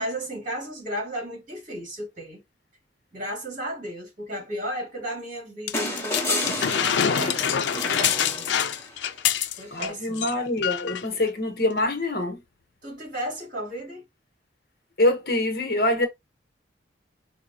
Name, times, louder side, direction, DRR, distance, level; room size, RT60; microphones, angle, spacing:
voice 1, 0.0-2.4 3.1-8.5 9.6-10.3 12.8-14.0, equal, 45° right, 2.4 m, -34 dB
sound 1, 5.7-9.9 10.2-10.3 10.6-11.1 11.8-11.9, left 8 dB, 75° left, 0.4 m, -25 dB
sound 2, 5.7-9.1 10.6-10.7, left 1 dB, 15° left, 1.3 m, -31 dB
voice 2, 9.7-12.4 15.0-16.1, left 1 dB, 55° left, 0.9 m, -25 dB
4.8 x 2.9 x 2.6 m
head